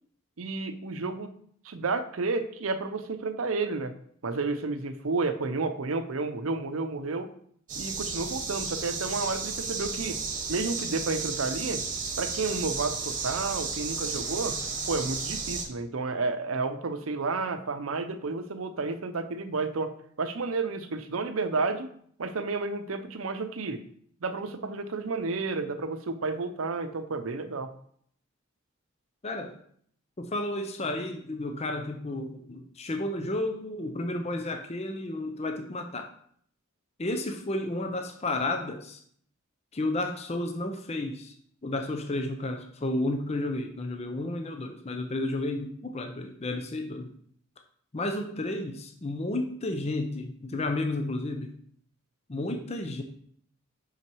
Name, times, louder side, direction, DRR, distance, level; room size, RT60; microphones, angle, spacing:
voice 1, 0.4-1.3 1.6-3.9 4.2-7.3 7.8-10.2 10.5-11.8 12.2-14.6 14.9-21.9 22.2-23.8 24.2-27.7, right 3 dB, 85° right, 10 dB, 0.7 m, -31 dB
sound 1, 7.7-15.6, right 4 dB, 40° right, 1.1 m, -33 dB
voice 2, 29.2-29.5 30.2-36.1 37.0-39.0 39.7-41.4 41.6-47.1 47.9-51.5 52.3-53.0, left 2 dB, 30° left, 5 dB, 0.6 m, -32 dB
5.9 x 5.7 x 4.6 m, 0.63 s
head